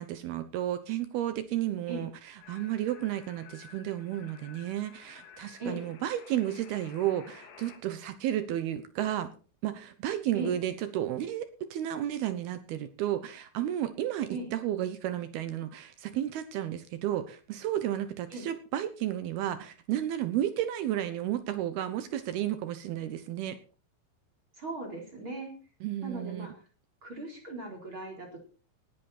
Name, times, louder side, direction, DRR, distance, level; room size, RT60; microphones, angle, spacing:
voice 1, 0.0-2.1 2.5-9.3 9.6-23.6 25.8-26.5, right 12 dB, 75° right, 11 dB, 2.3 m, -32 dB
sound 1, 2.4-7.8, left 7 dB, 80° left, 5.1 m, -53 dB
voice 2, 5.6-5.9 10.3-10.6 14.3-14.5 18.3-18.5 24.6-25.5 26.0-26.5 27.0-28.4, right 2 dB, 25° right, 1 dB, 4.2 m, -38 dB
18.0 x 11.5 x 4.3 m, 0.36 s
omnidirectional pair, 5.8 m